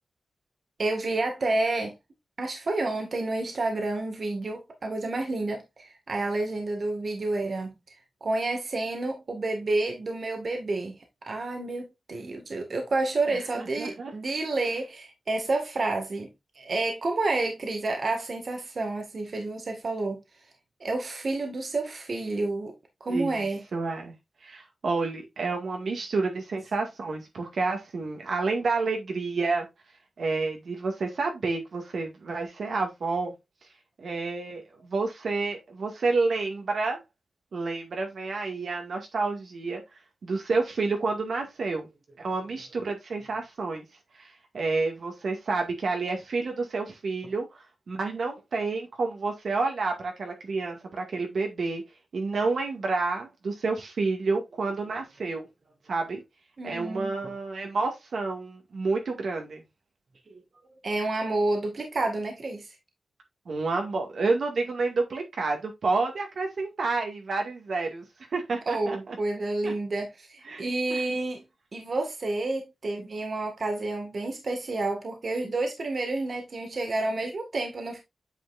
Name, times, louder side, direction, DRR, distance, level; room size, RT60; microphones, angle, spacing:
voice 1, 0.8-1.9 2.4-7.7 8.2-10.9 11.3-16.3 16.6-20.2 20.8-22.7 23.0-23.6 56.6-57.2 60.3-60.4 60.8-62.8 68.7-71.4 71.7-78.0, right 2 dB, 55° right, 1.9 m, -29 dB
voice 2, 13.6-14.1 23.1-24.1 24.4-29.7 30.2-33.3 34.0-37.0 37.5-39.8 40.2-41.9 42.2-43.8 44.2-51.8 52.1-55.5 55.9-56.2 56.6-59.6 63.5-68.0 68.3-69.2 69.6-69.7 70.5-70.6 70.9-71.0, right 3 dB, 75° right, 2.1 m, -29 dB
9.1 x 5.4 x 2.6 m
wide cardioid pair, 85°, 0 cm